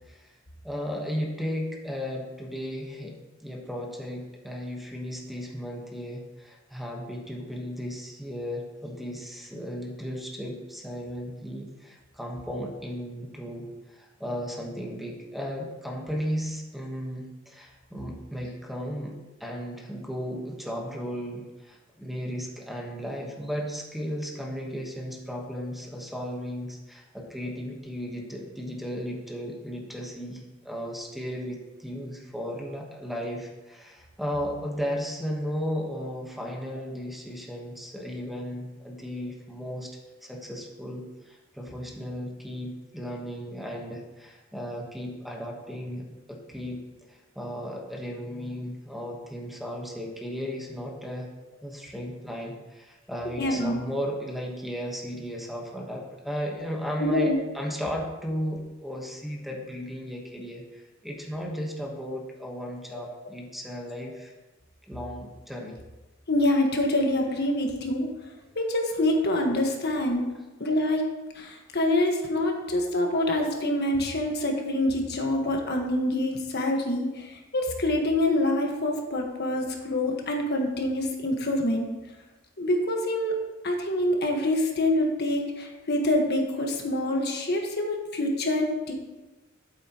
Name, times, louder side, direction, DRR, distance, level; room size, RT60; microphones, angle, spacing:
voice 1, 0.0-0.4 0.6-3.1 3.4-19.1 19.4-51.3 51.6-64.3 64.9-65.8, equal, ahead, 0 dB, 1.2 m, -35 dB
voice 2, 53.4-53.8 57.0-57.4 62.9-63.0 66.3-68.1 68.5-70.3 70.6-71.0 71.3-81.9 82.6-83.4 83.6-88.9, left 1 dB, 55° left, 2 dB, 1.4 m, -26 dB
13.0 x 8.0 x 3.0 m, 1.1 s
head